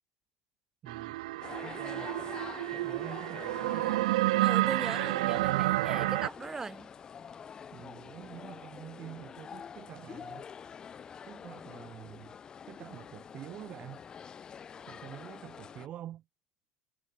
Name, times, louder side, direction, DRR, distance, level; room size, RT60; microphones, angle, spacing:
voice 1, 0.8-2.1 2.6-4.0 7.7-10.5 11.2-12.3 12.7-14.0 14.9-16.2, right 12 dB, 35° right, 0.9 m, -47 dB
sound 1, 0.9-6.3, right 19 dB, 85° right, 0.4 m, -30 dB
sound 2, 1.4-15.9, left 7 dB, 20° left, 2.2 m, -46 dB
voice 2, 4.4-6.9, right 4 dB, 10° right, 1.4 m, -38 dB
supercardioid pair, 155°, 4 cm